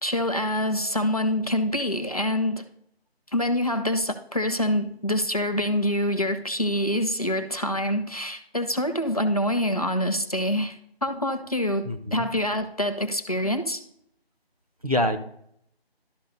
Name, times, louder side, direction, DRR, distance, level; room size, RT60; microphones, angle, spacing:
voice 1, 0.0-2.6 3.3-13.8, left 1 dB, 35° left, 7 dB, 0.6 m, -26 dB
voice 2, 11.8-12.3 14.8-15.2, left 1 dB, 35° right, 5 dB, 0.6 m, -25 dB
12.0 x 4.9 x 4.0 m, 0.70 s
figure-of-eight pair, 160°, 31 cm